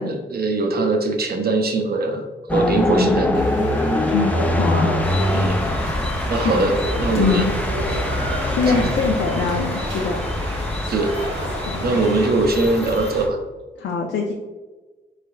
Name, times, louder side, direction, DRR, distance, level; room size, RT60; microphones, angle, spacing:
voice 1, 0.0-2.2 2.5-3.5 5.3-5.6 6.3-7.5 8.7-8.9 10.9-11.1 11.8-13.4, right 2 dB, 55° right, 4 dB, 0.6 m, -21 dB
sound 1, 2.5-13.3, left 1 dB, 10° left, 0.4 m, -24 dB
voice 2, 2.9-3.2 4.1-5.0 6.4-6.5 7.2-7.5 8.5-10.2 11.7-12.0 13.8-14.3, left 5 dB, 75° left, 1 dB, 0.4 m, -23 dB
sound 2, 3.3-12.3, equal, 80° right, 0.9 m, -30 dB
sound 3, 5.0-13.3, left 1 dB, 35° left, 0.7 m, -33 dB
3.7 x 3.2 x 2.3 m, 1.2 s
cardioid pair, 60°, 19 cm